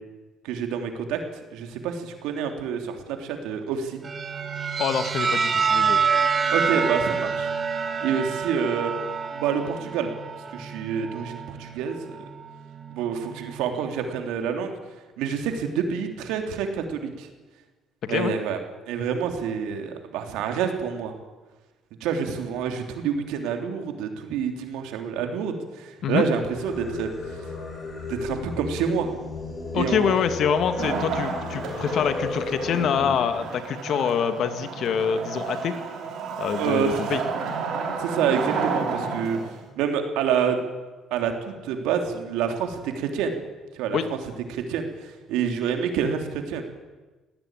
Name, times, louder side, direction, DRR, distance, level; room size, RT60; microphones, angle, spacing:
voice 1, 0.4-1.2 1.5-4.0 6.5-7.5 8.0-8.9 9.3-10.1 10.5-12.2 12.9-14.7 15.2-17.3 18.1-18.6 18.9-21.1 22.0-27.1 28.1-29.1 29.7-30.2 36.6-36.9 38.0-39.4 39.8-40.6 41.1-43.4 43.7-44.2 44.5-46.6, right 7 dB, 85° right, 5 dB, 3.2 m, -27 dB
sound 1, 4.0-14.0, right 6 dB, 35° right, 1.8 m, -27 dB
voice 2, 4.8-6.0 18.0-18.3 26.0-26.2 29.7-35.8 36.4-37.2 43.9-44.1, left 7 dB, 60° left, 9 dB, 2.0 m, -25 dB
Singing, 26.5-33.3, left 3 dB, 35° left, 7.0 m, -34 dB
Wood, 30.8-39.6, right 5 dB, 70° right, 5.5 m, -31 dB
19.5 x 17.5 x 9.1 m, 1.2 s
cardioid pair, 95°, 0 cm